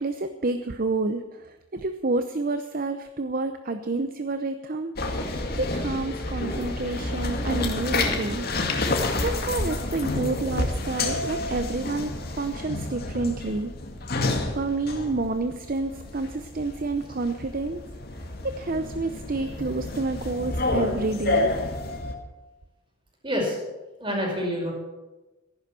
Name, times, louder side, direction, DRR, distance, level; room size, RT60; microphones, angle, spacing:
voice 1, 0.0-4.9 5.3-8.5 9.2-13.7 14.6-17.8 18.4-21.5, right 3 dB, 45° right, 9 dB, 0.7 m, -29 dB
sound 1, 5.0-22.1, left 2 dB, 50° left, 2.1 m, -29 dB
voice 2, 23.2-23.6 24.0-24.7, equal, 25° right, -1 dB, 5.0 m, -27 dB
14.5 x 11.5 x 7.5 m, 1.1 s
head